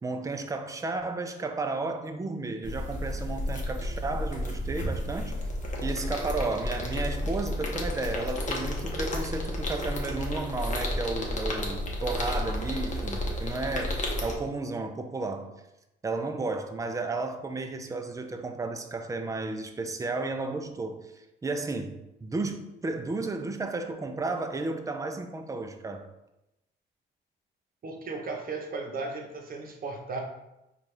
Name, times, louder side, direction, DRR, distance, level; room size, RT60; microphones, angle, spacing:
voice 1, 0.0-5.4 5.8-15.5 16.0-21.0 21.4-26.0, right 3 dB, 15° right, 0.4 m, -33 dB
sound 1, 2.6-14.3, left 1 dB, 40° left, 0.9 m, -32 dB
voice 2, 27.8-30.2, right 3 dB, 45° right, 0.9 m, -35 dB
4.2 x 2.4 x 3.2 m
cardioid pair, 90°, 20 cm